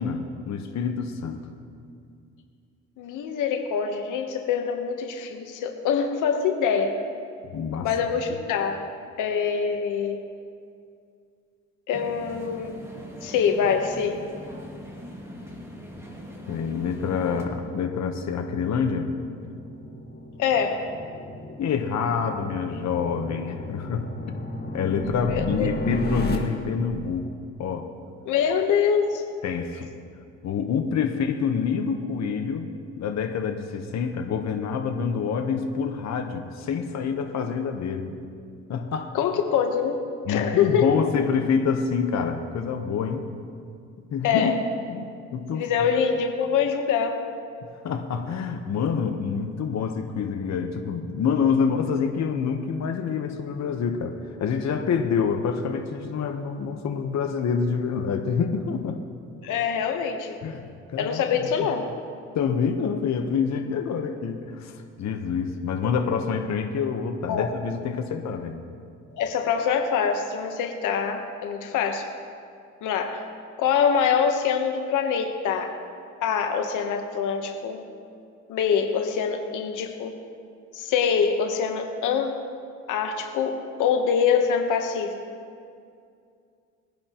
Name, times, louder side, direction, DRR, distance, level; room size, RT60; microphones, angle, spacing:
voice 1, 0.0-1.4 7.5-7.9 16.5-19.1 21.6-24.3 24.7-27.3 27.6-27.9 29.4-29.9 30.4-38.2 38.7-39.1 40.3-43.2 44.1-44.6 44.9-45.6 47.8-59.0 60.4-60.7 60.9-61.7 62.3-68.6, left 6 dB, 65° left, 5 dB, 1.1 m, -27 dB
voice 2, 3.0-7.0 7.8-8.9 9.2-10.2 11.9-12.8 13.2-14.2 20.4-20.9 25.3-25.7 28.3-29.2 39.1-40.0 40.3-41.0 44.2-44.6 45.5-47.3 59.4-60.4 61.0-61.8 67.3-67.5 69.1-72.0 72.8-73.2 73.6-75.7 76.2-77.8 78.5-80.2 80.7-82.4 82.9-85.2, left 7 dB, 90° left, 4 dB, 1.1 m, -24 dB
sound 1, 11.9-17.4, equal, 10° right, 2.1 m, -41 dB
sound 2, 15.4-26.4, left 1 dB, 30° left, 1.9 m, -35 dB
21.5 x 10.5 x 3.0 m, 2.3 s
cardioid pair, 90°, 30 cm